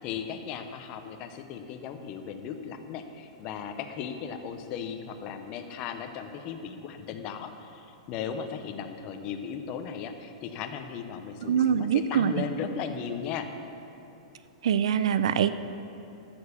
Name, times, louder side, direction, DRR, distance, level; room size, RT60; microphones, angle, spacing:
voice 1, 0.0-13.5, left 7 dB, 25° left, 7 dB, 0.6 m, -37 dB
voice 2, 11.5-12.4 14.6-15.5, right 8 dB, 55° right, 13 dB, 0.4 m, -24 dB
13.0 x 6.9 x 6.8 m, 2.9 s
supercardioid pair, 180°, 4 cm